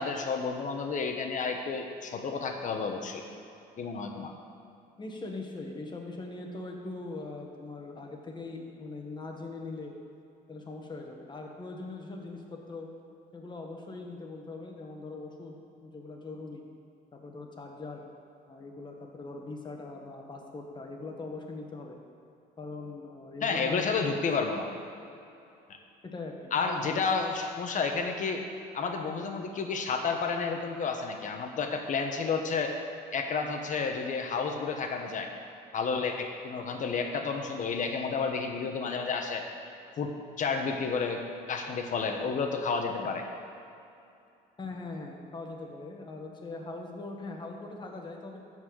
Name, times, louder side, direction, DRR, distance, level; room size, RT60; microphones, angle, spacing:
voice 1, 0.0-3.2 3.8-4.3 23.4-24.7 26.5-28.4 28.7-32.7 33.1-35.3 35.7-39.4 40.0-40.1 40.4-43.2, left 5 dB, 50° left, 4 dB, 1.3 m, -31 dB
voice 2, 5.0-9.9 10.5-12.9 13.3-16.6 17.1-18.1 18.5-22.0 22.6-24.2 26.0-27.0 44.6-48.4, left 3 dB, 25° left, 1 dB, 1.7 m, -41 dB
13.0 x 4.6 x 7.7 m, 2.7 s
cardioid pair, 110°, 17 cm